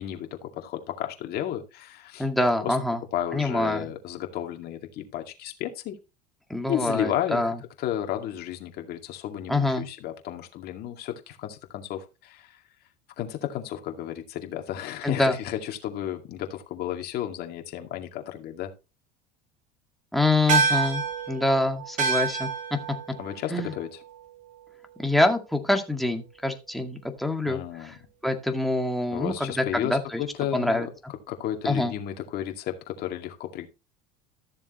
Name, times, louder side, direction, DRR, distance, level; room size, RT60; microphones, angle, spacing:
voice 1, 0.0-2.3 2.6-2.8 3.1-6.0 6.7-7.5 7.8-12.6 13.2-18.7 23.2-24.0 27.5-28.0 29.1-30.9 31.3-33.7, left 11 dB, 55° left, 5 dB, 2.2 m, -33 dB
voice 2, 2.2-3.0 3.3-3.9 6.5-7.6 9.5-9.9 15.0-15.4 20.1-22.8 23.5-23.7 25.0-28.0 28.2-30.2 30.5-30.9 31.6-31.9, left 2 dB, ahead, 4 dB, 1.9 m, -25 dB
sound 1, 20.5-25.2, right 5 dB, 40° right, 3.5 m, -29 dB
13.5 x 7.1 x 3.1 m, 0.28 s
supercardioid pair, 105°, 20 cm